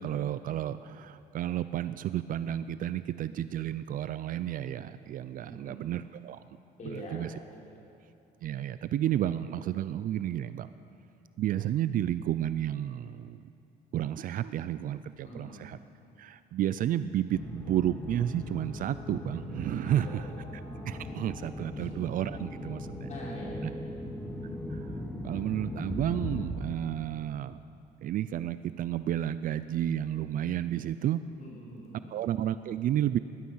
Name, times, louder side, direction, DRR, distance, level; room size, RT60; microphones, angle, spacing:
voice 1, 0.0-6.4 6.9-7.3 8.4-10.7 11.4-13.4 13.9-15.8 16.2-20.2 20.9-23.1 23.6-23.7 24.4-24.9 25.2-27.6 28.0-31.2 32.1-33.2, right 11 dB, 55° right, 14 dB, 0.4 m, -31 dB
voice 2, 5.4-6.0 6.8-7.8 15.2-15.6 19.8-20.1 21.7-22.0 23.1-24.0 31.4-32.2, equal, 45° left, -4 dB, 4.7 m, -44 dB
sound 1, 17.3-26.5, left 1 dB, 10° left, 2.0 m, -39 dB
19.0 x 11.5 x 5.6 m, 2.7 s
cardioid pair, 110°, 17 cm